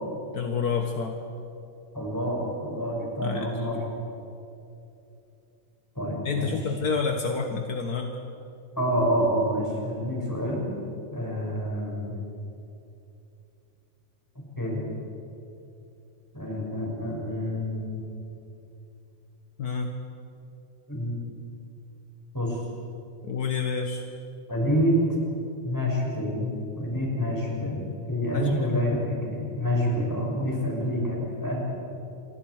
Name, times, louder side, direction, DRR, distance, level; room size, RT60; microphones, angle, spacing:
voice 1, 0.3-1.2 3.2-3.5 6.2-8.2 19.6-20.0 23.2-24.0 28.3-28.8, left 5 dB, 55° left, 4 dB, 1.0 m, -29 dB
voice 2, 1.9-3.8 5.9-6.5 8.8-10.8 11.1-12.1 14.6-14.9 16.3-18.0 20.9-21.2 22.3-22.6 24.5-25.0 25.6-26.5 26.7-31.6, equal, 5° left, -3 dB, 6.4 m, -27 dB
28.5 x 23.5 x 4.9 m, 2.7 s
omnidirectional pair, 3.3 m